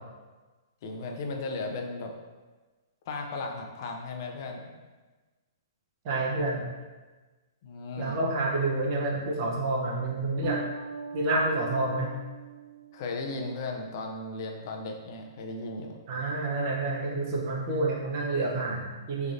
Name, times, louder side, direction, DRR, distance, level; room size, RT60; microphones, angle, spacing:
voice 1, 0.8-2.1 3.1-4.8 7.6-8.2 12.9-16.0, left 3 dB, 55° left, 2 dB, 0.4 m, -36 dB
voice 2, 6.0-6.7 8.0-10.6 11.1-12.1 16.1-19.3, right 2 dB, 45° right, -2 dB, 0.6 m, -28 dB
Bass guitar, 10.4-13.1, right 6 dB, 20° left, 0.7 m, -39 dB
3.2 x 2.5 x 2.5 m, 1.3 s
hypercardioid pair, 130°, 2 cm